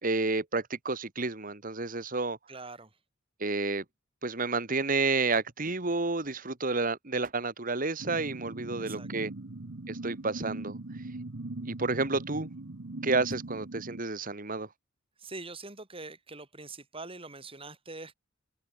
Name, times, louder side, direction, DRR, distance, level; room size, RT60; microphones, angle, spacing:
voice 1, 0.0-2.4 3.4-3.8 4.2-9.3 9.9-10.8 11.7-12.5 13.0-14.7, right 3 dB, 45° right, 2.2 m, -30 dB
voice 2, 2.5-2.9 8.8-9.1 15.2-18.1, right 3 dB, 30° right, 6.7 m, -44 dB
sound 1, 8.0-14.0, right 2 dB, 90° right, 1.2 m, -40 dB
head